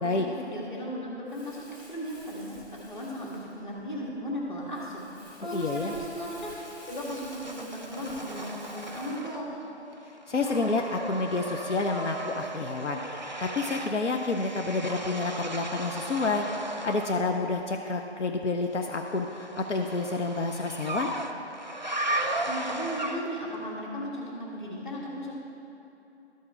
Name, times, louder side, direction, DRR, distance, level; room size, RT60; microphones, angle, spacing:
voice 1, 0.0-5.0 5.4-6.5 6.9-9.6 22.4-25.3, equal, 45° left, -4 dB, 2.0 m, -36 dB
Crumpling crinkling, 1.3-9.2, left 1 dB, 20° left, 1.8 m, -50 dB
voice 2, 5.4-5.9 10.3-21.1, left 3 dB, 85° left, 3 dB, 0.8 m, -29 dB
sound 1, 6.6-9.7 10.0-17.3 18.8-23.5, right 1 dB, 40° right, 0.5 m, -36 dB
13.0 x 4.7 x 4.3 m, 3.0 s
figure-of-eight pair, 175°, 34 cm